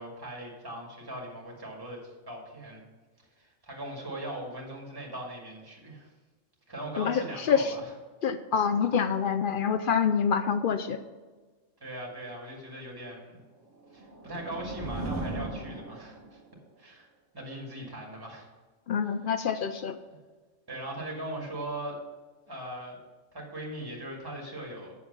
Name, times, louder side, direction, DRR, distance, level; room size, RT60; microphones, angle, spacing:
voice 1, 0.0-2.0 2.3-2.8 3.4-6.1 6.7-7.9 11.8-13.4 13.9-16.4 16.8-17.1 17.3-18.5 19.0-19.3 20.7-22.0 22.5-23.0 23.3-25.0, right 1 dB, 15° right, -2 dB, 2.1 m, -40 dB
voice 2, 7.0-7.7 8.2-11.0 18.9-20.0, left 7 dB, 65° left, 10 dB, 0.5 m, -26 dB
sound 1, 13.7-16.5, right 2 dB, 65° right, 2.0 m, -37 dB
8.4 x 6.8 x 5.5 m, 1.3 s
omnidirectional pair, 1.3 m